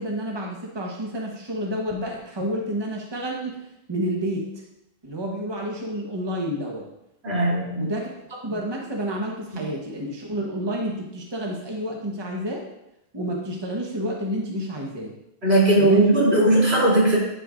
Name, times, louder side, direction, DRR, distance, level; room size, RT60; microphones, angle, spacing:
voice 1, 0.0-3.6 3.9-4.5 5.0-6.9 7.8-12.6 13.1-15.1 15.8-16.1, equal, 25° right, -1 dB, 1.1 m, -29 dB
voice 2, 7.2-7.9 15.4-17.2, right 1 dB, 90° right, -7 dB, 3.5 m, -18 dB
8.8 x 7.6 x 2.5 m, 0.84 s
omnidirectional pair, 1.1 m